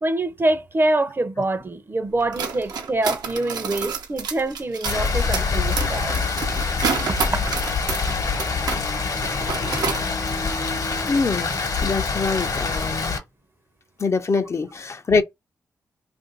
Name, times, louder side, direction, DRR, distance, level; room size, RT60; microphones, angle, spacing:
voice 1, 0.0-6.1 7.1-7.5, right 2 dB, 30° right, 0.6 m, -25 dB
sound 1, 2.2-8.8 9.1-10.1, right 5 dB, 75° right, 0.7 m, -29 dB
Rain, 4.8-13.2, left 4 dB, 60° left, 1.0 m, -25 dB
voice 2, 11.1-13.2 14.0-15.2, left 4 dB, 45° left, 0.5 m, -24 dB
2.6 x 2.5 x 3.8 m
supercardioid pair, 45°, 7 cm